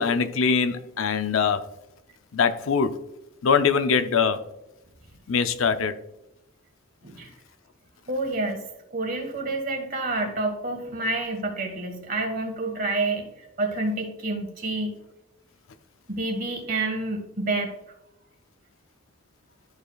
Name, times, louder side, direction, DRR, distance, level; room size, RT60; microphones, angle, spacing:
voice 1, 0.0-1.6 2.3-3.0 3.4-4.4 5.3-5.9, left 6 dB, 85° left, 0.5 m, -22 dB
voice 2, 8.1-13.3 13.6-15.0 16.1-17.7, right 2 dB, 45° right, 1.5 m, -28 dB
13.0 x 4.8 x 2.3 m
head